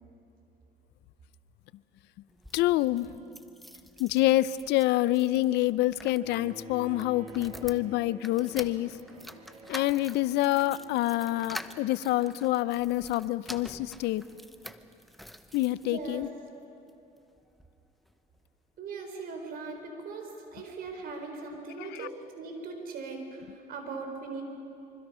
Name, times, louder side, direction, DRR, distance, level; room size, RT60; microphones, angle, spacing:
sound 1, 2.3-16.3 16.9-17.7 18.1-18.2 18.4-18.5, equal, ahead, 0.8 m, -47 dB
voice 1, 2.5-3.1 4.0-8.9 9.7-14.2 15.5-16.3 21.8-22.1, left 16 dB, 85° left, 17 dB, 0.6 m, -27 dB
Bowed string instrument, 6.2-12.3, right 1 dB, 40° right, 3.0 m, -50 dB
voice 2, 15.8-16.2 18.8-24.4, right 4 dB, 60° right, 4 dB, 4.6 m, -39 dB
25.5 x 24.0 x 5.6 m, 2.7 s
cardioid pair, 110°, 17 cm